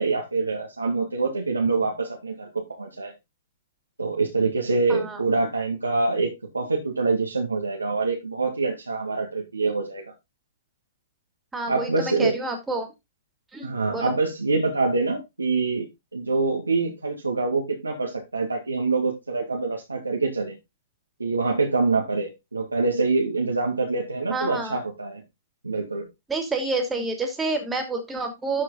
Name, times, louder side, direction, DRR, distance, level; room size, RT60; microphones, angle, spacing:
voice 1, 0.0-2.5 2.8-3.1 4.0-10.0 11.7-12.4 13.6-15.9 16.1-20.6 21.2-25.2 25.6-26.0, right 3 dB, 90° right, 1 dB, 2.0 m, -25 dB
voice 2, 4.9-5.2 11.5-12.9 13.5-14.1 24.3-24.8 26.3-28.6, right 3 dB, 10° right, 4 dB, 2.9 m, -29 dB
12.5 x 5.0 x 4.0 m, 0.22 s
figure-of-eight pair, 115°, 0 cm